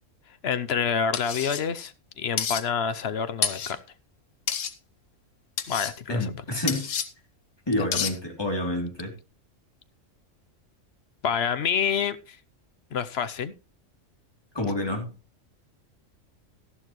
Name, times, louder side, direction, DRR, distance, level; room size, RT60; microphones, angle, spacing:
voice 1, 0.4-3.8 5.7-6.4 7.8-7.9 11.2-12.4 12.9-13.5, left 7 dB, 60° left, 13 dB, 1.0 m, -27 dB
sound 1, 1.1-1.6 2.4-2.6 3.4-3.7 4.5-4.7 5.6-5.9 6.7-7.1 7.9-8.1, left 8 dB, 85° left, 1.3 m, -29 dB
voice 2, 6.1-6.9 7.7-9.1 14.5-15.1, left 1 dB, 20° left, 1 dB, 3.1 m, -28 dB
13.5 x 11.5 x 3.1 m, 0.30 s
omnidirectional pair, 1.3 m